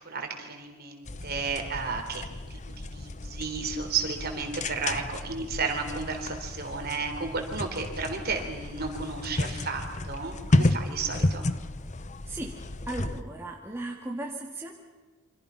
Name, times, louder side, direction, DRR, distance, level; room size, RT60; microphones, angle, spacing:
voice 1, 0.0-2.2 2.5-11.4, right 4 dB, 45° right, 4 dB, 3.6 m, -33 dB
sound 1, 1.1-13.2, left 2 dB, 30° left, 0.8 m, -32 dB
voice 2, 12.9-14.7, right 2 dB, 10° right, -1 dB, 1.9 m, -36 dB
28.0 x 25.5 x 5.8 m, 1.3 s
head